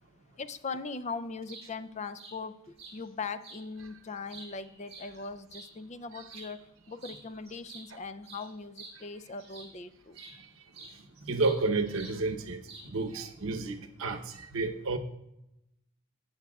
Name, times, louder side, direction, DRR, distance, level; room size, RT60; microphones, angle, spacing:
voice 1, 0.4-2.6 2.9-10.2, left 4 dB, 30° left, 13 dB, 0.4 m, -40 dB
sound 1, 1.3-1.7 2.2-2.4 2.8-3.0 3.4-3.6 4.1-5.7 6.2-6.5 7.0-7.2 7.5-9.8 10.1-10.4 10.7-11.6 12.0-12.2 12.7-13.1, right 3 dB, 30° right, 3.8 m, -49 dB
voice 2, 11.3-15.0, right 3 dB, 70° right, 5 dB, 0.9 m, -31 dB
16.0 x 8.0 x 2.3 m, 0.88 s
head